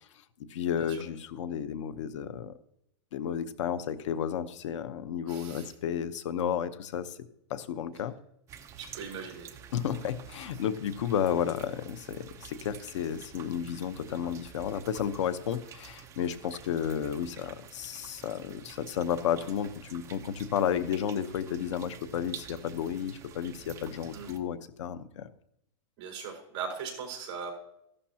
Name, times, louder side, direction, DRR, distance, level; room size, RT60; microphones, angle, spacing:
voice 1, 0.5-2.5 3.1-7.2 7.5-8.1 9.7-25.3, left 8 dB, 80° left, 13 dB, 1.0 m, -32 dB
voice 2, 5.3-5.7 8.8-9.5 24.1-24.3 26.0-27.5, right 6 dB, 35° right, 0 dB, 4.4 m, -39 dB
sound 1, 8.5-24.4, right 8 dB, 20° right, 0.8 m, -49 dB
14.5 x 12.0 x 2.9 m, 0.78 s
supercardioid pair, 165°, 15 cm